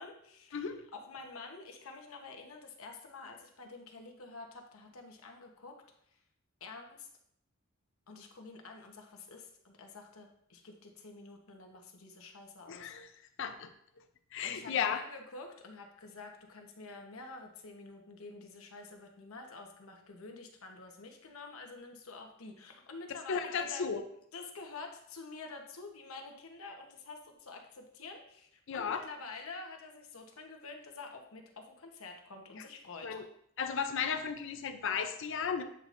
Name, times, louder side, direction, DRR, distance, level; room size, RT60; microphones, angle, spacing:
voice 1, 0.0-5.7 6.6-7.1 8.1-12.9 14.4-23.9 24.3-33.1, left 3 dB, 90° left, 3 dB, 1.0 m, -48 dB
voice 2, 0.5-0.9 12.7-13.1 13.4-13.7 14.3-15.0 23.1-24.0 28.7-29.0 32.6-32.7 33.0-33.3 33.6-35.6, left 6 dB, 65° left, 9 dB, 0.5 m, -34 dB
8.1 x 5.0 x 2.5 m, 0.72 s
head